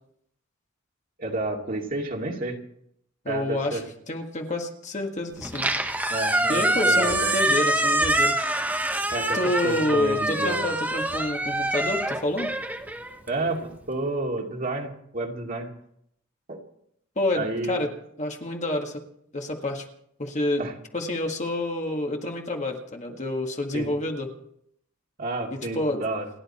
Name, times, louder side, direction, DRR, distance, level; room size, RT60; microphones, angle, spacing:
voice 1, 1.2-2.6 3.3-3.8 6.1-7.3 9.1-10.7 13.3-15.7 16.5-16.6 17.4-17.8 20.6-20.7 23.7-23.9 25.2-26.3, right 2 dB, 40° right, 1 dB, 2.4 m, -30 dB
voice 2, 3.3-3.8 4.1-5.7 6.5-8.4 9.3-12.5 17.2-17.9 18.2-19.0 19.3-19.8 20.2-20.6 20.9-24.3 25.5-26.0, left 1 dB, 35° left, 2 dB, 1.8 m, -28 dB
Squeak, 5.4-13.7, right 1 dB, 10° right, 1.2 m, -25 dB
29.5 x 10.5 x 4.4 m, 0.72 s
head